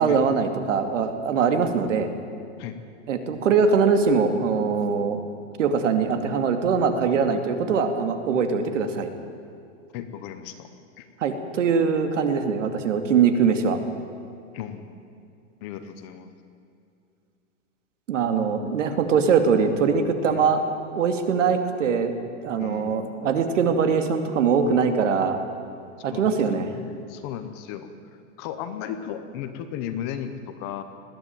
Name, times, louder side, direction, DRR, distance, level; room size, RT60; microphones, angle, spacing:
voice 1, 0.0-2.1 3.1-5.2 5.6-9.1 11.2-13.8 18.1-20.6 20.9-22.1 22.4-25.4 26.0-26.7, right 6 dB, 75° right, 6 dB, 2.5 m, -22 dB
voice 2, 9.9-10.7 11.0-11.1 14.5-15.0 15.6-16.3 20.3-20.4 22.6-23.1 26.1-27.9 28.4-30.8, left 9 dB, 20° left, 9 dB, 0.7 m, -35 dB
20.5 x 14.0 x 9.1 m, 2.5 s
supercardioid pair, 175°, 37 cm